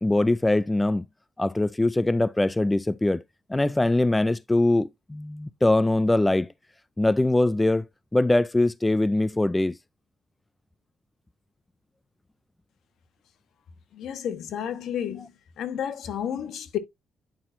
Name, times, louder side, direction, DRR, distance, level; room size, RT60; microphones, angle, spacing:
voice 1, 0.0-1.0 1.4-3.2 3.5-6.5 7.0-7.8 8.1-9.7, left 2 dB, 10° left, 0.3 m, -22 dB
voice 2, 13.9-15.3 15.6-16.8, left 9 dB, 75° left, 1.2 m, -31 dB
9.5 x 5.7 x 2.6 m
cardioid pair, 120°, 0 cm